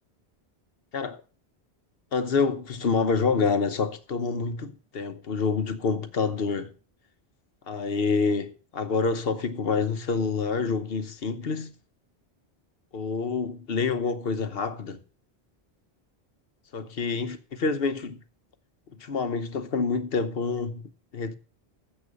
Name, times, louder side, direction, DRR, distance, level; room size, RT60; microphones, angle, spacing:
voice 1, 2.1-6.7 7.7-11.7 12.9-15.0 16.7-18.2 19.0-20.8 21.1-21.3, left 4 dB, 65° left, 1.2 m, -27 dB
13.0 x 7.8 x 5.2 m
omnidirectional pair, 1.1 m